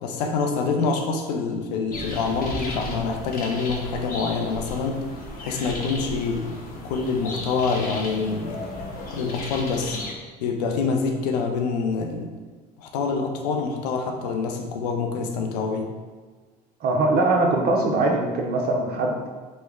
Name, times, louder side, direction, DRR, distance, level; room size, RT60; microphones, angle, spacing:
voice 1, 0.0-5.0 5.4-6.5 6.8-10.0 10.4-12.3 12.8-15.9, left 4 dB, 85° left, 3 dB, 0.5 m, -26 dB
sound 1, 1.9-10.1, left 1 dB, 45° left, 0.8 m, -35 dB
voice 2, 16.8-19.3, right 2 dB, 50° right, 1 dB, 0.6 m, -22 dB
3.1 x 2.1 x 3.5 m, 1.4 s
supercardioid pair, 80°, 20 cm